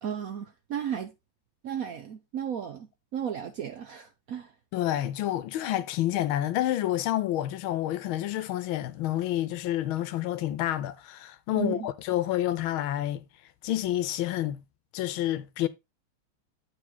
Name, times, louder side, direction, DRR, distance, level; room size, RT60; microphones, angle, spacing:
voice 1, 0.0-1.1 1.6-4.5 11.5-11.9, right 8 dB, 70° right, 0.8 m, -34 dB
voice 2, 4.7-13.2 13.6-14.6 14.9-15.7, left 13 dB, 85° left, 1.5 m, -29 dB
8.5 x 4.8 x 3.8 m
omnidirectional pair, 2.3 m